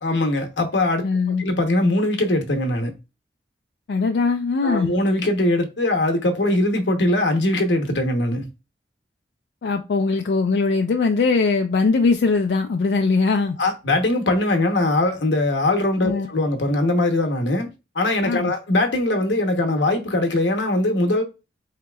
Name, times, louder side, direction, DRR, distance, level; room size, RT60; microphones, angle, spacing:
voice 1, 0.0-1.1 1.4-2.9 4.6-8.4 13.6-17.7 17.9-21.2, left 1 dB, 85° left, 0.8 m, -21 dB
voice 2, 1.0-1.5 3.9-4.9 9.6-13.6 16.0-16.3 18.2-18.5, left 4 dB, 65° left, 0.3 m, -21 dB
4.0 x 2.8 x 2.2 m
head